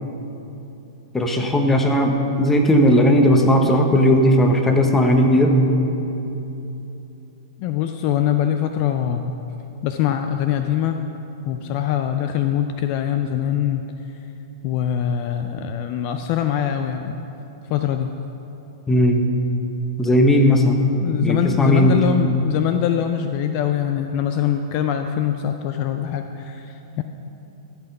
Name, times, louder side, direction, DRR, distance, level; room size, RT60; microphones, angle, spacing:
voice 1, 1.1-5.6 18.9-19.3 20.0-20.8 21.2-22.0, equal, 10° left, 3 dB, 1.1 m, -16 dB
voice 2, 7.6-9.3 9.8-11.0 11.5-13.9 14.6-17.2 17.7-18.1 21.0-27.0, left 9 dB, 45° left, 7 dB, 0.5 m, -23 dB
14.0 x 5.8 x 5.4 m, 3.0 s
hypercardioid pair, 115°, 2 cm